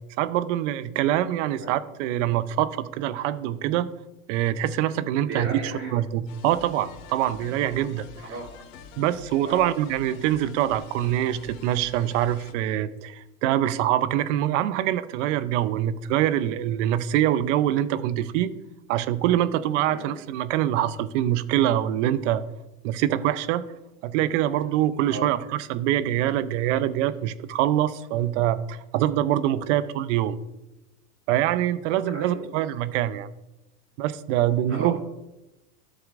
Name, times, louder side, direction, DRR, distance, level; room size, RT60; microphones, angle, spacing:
voice 1, 0.2-3.9 4.3-8.0 9.0-18.5 18.9-22.4 22.8-23.6 24.0-30.4 31.3-33.3 34.0-35.0, right 12 dB, 55° right, 15 dB, 0.6 m, -24 dB
voice 2, 5.2-6.0 8.2-8.5 9.4-9.7 19.9-20.1 25.1-25.3 32.1-32.5 34.7-35.0, right 2 dB, 30° right, -2 dB, 2.8 m, -35 dB
sound 1, 6.3-12.5, left 6 dB, 65° left, 1.1 m, -46 dB
12.5 x 6.9 x 2.5 m, 0.95 s
hypercardioid pair, 115°, 43 cm